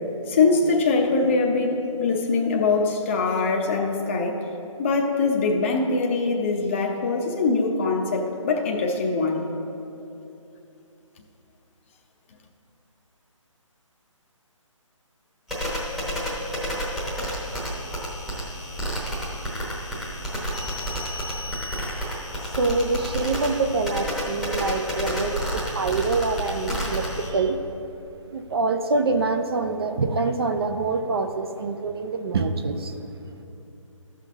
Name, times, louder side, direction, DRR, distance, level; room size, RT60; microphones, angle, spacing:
voice 1, 0.3-4.4 4.8-9.5, left 4 dB, 25° left, 2 dB, 0.6 m, -23 dB
sound 1, 15.5-27.3, equal, ahead, 0.9 m, -30 dB
voice 2, 22.5-27.6 28.3-33.0, right 3 dB, 50° right, 7 dB, 0.6 m, -25 dB
14.0 x 6.0 x 3.5 m, 2.9 s
hypercardioid pair, 155°, 17 cm